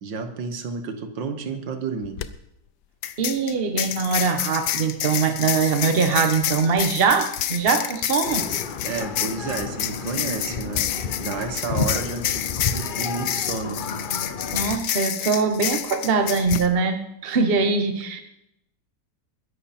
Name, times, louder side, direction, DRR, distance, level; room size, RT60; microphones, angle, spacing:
voice 1, 0.0-2.2 8.8-10.9 11.2-13.8, right 5 dB, 90° right, 8 dB, 2.0 m, -31 dB
sound 1, 2.0-2.3 3.0-16.7, left 11 dB, 70° left, 1.3 m, -29 dB
voice 2, 3.2-8.5 14.5-18.2, right 5 dB, 35° right, 7 dB, 1.4 m, -22 dB
sound 2, 8.2-14.8, left 4 dB, 45° left, 0.6 m, -31 dB
21.0 x 11.0 x 4.3 m, 0.79 s
omnidirectional pair, 1.9 m